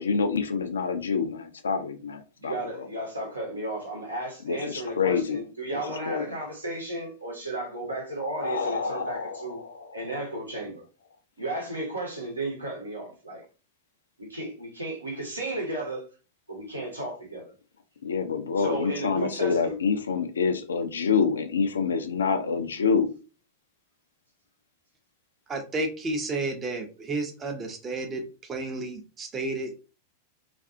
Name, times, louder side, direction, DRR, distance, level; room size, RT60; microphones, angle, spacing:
voice 1, 0.0-2.9 4.5-5.4 6.1-6.4 8.3-10.0 18.0-23.1, left 5 dB, 70° left, 0.3 m, -27 dB
voice 2, 2.4-9.6 9.9-10.8 11.4-13.4 14.2-16.1 16.5-17.5 18.6-19.7, right 1 dB, 80° right, 0.9 m, -34 dB
voice 3, 25.5-29.7, right 2 dB, 25° right, 0.6 m, -32 dB
2.4 x 2.3 x 2.4 m
figure-of-eight pair, 90°, 0 cm